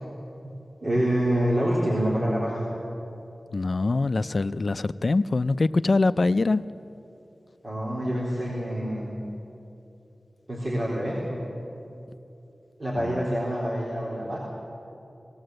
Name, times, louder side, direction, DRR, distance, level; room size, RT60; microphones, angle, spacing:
voice 1, 0.8-2.7 7.6-9.2 10.5-11.4 12.8-14.4, equal, 45° right, -6 dB, 3.7 m, -26 dB
voice 2, 3.5-6.6 13.0-13.2, left 3 dB, 55° left, 14 dB, 0.4 m, -24 dB
18.5 x 18.5 x 7.8 m, 2.9 s
wide cardioid pair, 80°, 0 cm